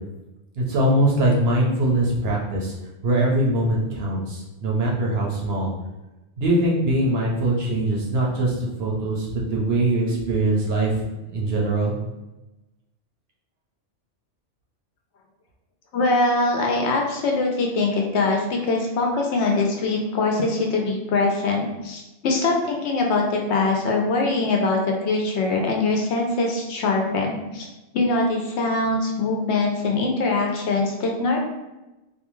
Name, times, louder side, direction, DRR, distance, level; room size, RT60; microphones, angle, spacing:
voice 1, 0.6-2.7 3.0-5.7 6.4-11.0 11.3-11.9, right 1 dB, 60° right, -2 dB, 0.8 m, -22 dB
voice 2, 15.9-27.7 27.9-31.5, left 3 dB, 70° left, 0 dB, 0.8 m, -23 dB
2.6 x 2.2 x 3.0 m, 1.0 s
omnidirectional pair, 1.2 m